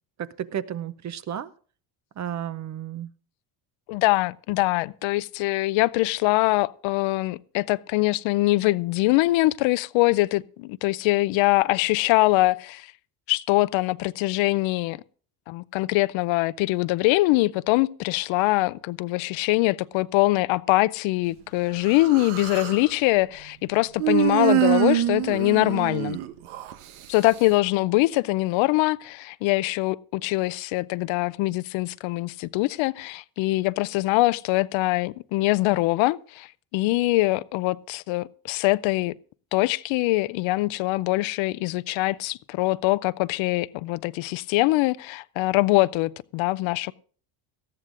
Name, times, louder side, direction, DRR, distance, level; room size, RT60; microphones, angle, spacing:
voice 1, 0.2-1.5 2.2-3.1, right 10 dB, 35° right, 0.6 m, -32 dB
voice 2, 3.9-12.9 13.3-15.0 15.5-26.2 27.1-39.1 39.5-46.9, left 20 dB, 70° left, 0.5 m, -23 dB
Human voice, 21.9-22.8 24.0-26.7, right 13 dB, 85° right, 1.0 m, -24 dB
18.5 x 13.5 x 2.5 m
cardioid pair, 105°, 50 cm